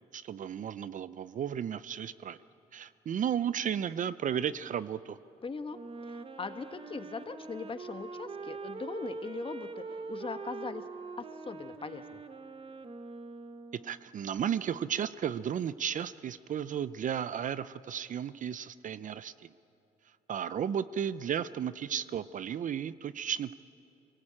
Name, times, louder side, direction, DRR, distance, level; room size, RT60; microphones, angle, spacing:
voice 1, 0.1-2.4 2.7-5.2 13.8-19.5 20.3-23.5, right 9 dB, 50° right, 16 dB, 0.6 m, -34 dB
voice 2, 5.4-10.8 11.2-12.2, left 4 dB, 35° left, 9 dB, 1.3 m, -40 dB
Wind instrument woodwind instrument, 5.7-14.1, right 4 dB, 35° right, 1.2 m, -43 dB
23.5 x 18.5 x 8.8 m, 2.8 s
cardioid pair, 75°, 16 cm